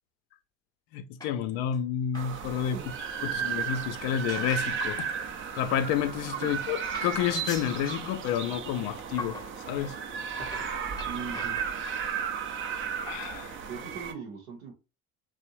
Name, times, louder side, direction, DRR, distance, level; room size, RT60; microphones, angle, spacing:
voice 1, 0.9-2.8 3.2-5.1 5.6-9.4 9.7-10.0 13.0-13.6, left 9 dB, 60° left, 0.5 m, -30 dB
sound 1, 1.2-1.8 2.1-2.4 2.8-2.9 3.7-4.8 5.1-5.3 6.1-6.2 6.5-6.7 6.9-8.1 8.7-8.8 9.2-9.6 10.3-12.1 12.8-12.9 13.2-13.3 13.7-13.8 13.9-14.0, left 2 dB, 10° left, 0.7 m, -43 dB
sound 2, 2.1-14.1, right 7 dB, 30° right, 0.5 m, -34 dB
voice 2, 2.5-2.9 3.2-3.5 6.4-6.5 11.0-11.6 13.7-14.7, right 5 dB, 80° right, 0.9 m, -40 dB
2.6 x 2.0 x 2.9 m
hypercardioid pair, 75°, 40 cm